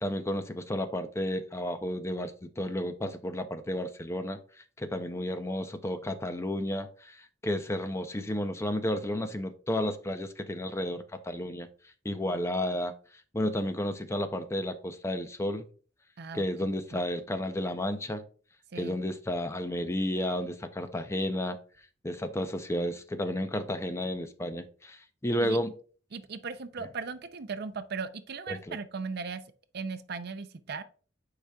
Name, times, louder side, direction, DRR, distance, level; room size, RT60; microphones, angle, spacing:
voice 1, 0.0-4.4 4.8-11.7 12.0-12.9 13.3-15.7 16.3-18.2 18.7-21.6 22.0-25.7 28.5-28.8, left 1 dB, 15° left, 0.5 m, -32 dB
voice 2, 16.2-17.0 18.7-19.0 25.4-25.6 26.1-29.4 29.7-30.8, right 5 dB, 55° right, 0.5 m, -38 dB
9.1 x 4.9 x 2.3 m
head